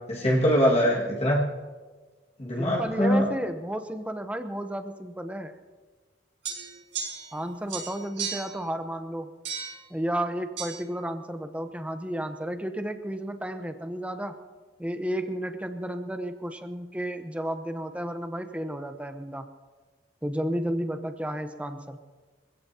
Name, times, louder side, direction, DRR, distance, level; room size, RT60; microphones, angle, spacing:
voice 1, 0.1-1.5 2.4-3.3, equal, 35° left, -4 dB, 1.9 m, -23 dB
voice 2, 2.6-5.6 7.3-9.3 9.9-14.4 14.8-19.5 20.2-22.0, right 1 dB, 5° right, 7 dB, 0.8 m, -32 dB
sound 1, 6.4-7.4 7.7-8.6 9.4-9.8 10.6-10.7, right 6 dB, 75° right, 6.1 m, -35 dB
25.0 x 16.5 x 2.9 m, 1.4 s
head